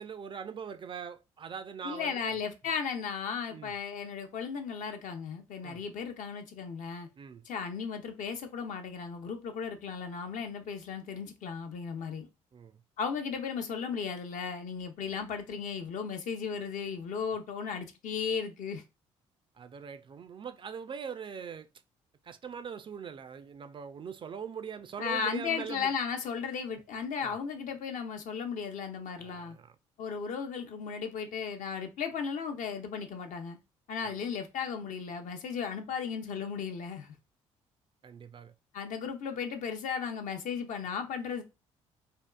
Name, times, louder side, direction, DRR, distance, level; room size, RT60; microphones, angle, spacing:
voice 1, 0.0-2.3 3.5-3.7 5.6-5.8 7.2-7.5 12.5-12.8 19.6-21.7 22.2-25.9 27.2-27.4 29.2-29.7 34.0-34.1 38.0-38.5, right 7 dB, 35° right, 0.3 m, -42 dB
voice 2, 1.8-7.1 7.5-12.3 13.0-18.8 25.0-29.6 30.0-33.6 33.9-37.2 38.7-41.4, left 6 dB, 55° left, 0.6 m, -35 dB
3.5 x 2.3 x 2.2 m
hypercardioid pair, 50°, 15 cm